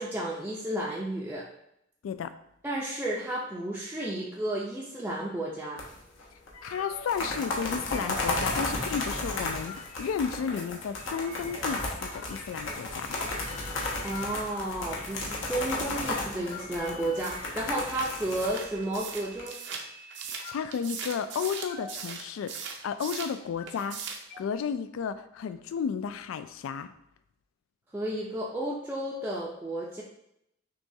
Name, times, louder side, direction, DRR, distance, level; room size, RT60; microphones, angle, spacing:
voice 1, 0.0-1.5 2.6-5.8 14.0-19.6 27.9-30.0, right 1 dB, 10° right, -5 dB, 0.4 m, -32 dB
sound 1, 5.8-6.2 6.5-6.6 6.9-19.4, left 2 dB, 70° left, 0.9 m, -33 dB
sound 2, 6.5-7.1 7.4-7.6 7.9-8.3 9.2-10.0 11.0-11.6 12.0-12.7 12.9-14.3 15.0-15.1 15.7-16.0 16.5-20.5 21.0-21.2 21.7-22.0 22.3-23.1 23.4-23.7 24.3-24.4, left 2 dB, 45° left, 1.1 m, -47 dB
voice 2, 6.6-13.2 20.3-22.6 22.8-24.0 24.4-26.9, left 7 dB, 85° left, 12 dB, 0.3 m, -33 dB
sound 3, 17.2-23.4 23.7-24.3, right 6 dB, 60° right, 0.5 m, -40 dB
6.0 x 2.3 x 2.7 m, 0.79 s
head